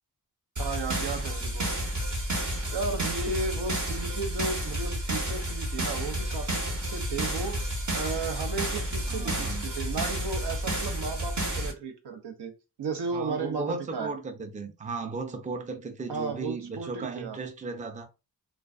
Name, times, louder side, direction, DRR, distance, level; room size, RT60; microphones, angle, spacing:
sound 1, 0.6-11.7, right 1 dB, 45° right, 0.9 m, -31 dB
voice 1, 0.6-1.8 2.7-7.7 7.9-12.5 12.8-14.1 16.1-17.4, right 4 dB, 85° right, 0.7 m, -34 dB
voice 2, 9.1-9.7 13.1-18.1, right 4 dB, 20° right, 0.4 m, -36 dB
2.3 x 2.2 x 2.4 m
cardioid pair, 65°, 39 cm